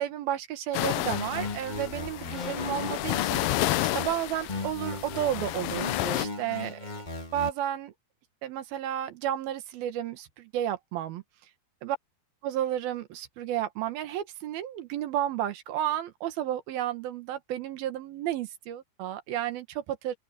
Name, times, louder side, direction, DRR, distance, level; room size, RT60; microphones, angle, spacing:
voice 1, 0.0-6.8 7.3-7.9 8.4-11.2 11.8-12.0 12.4-20.2, right 11 dB, 70° right, 3.2 m, -32 dB
sound 1, 0.7-6.3, left 17 dB, 80° left, 2.1 m, -31 dB
sound 2, 1.1-4.1 4.5-7.5, left 2 dB, 20° left, 1.4 m, -37 dB
open air
omnidirectional pair, 4.5 m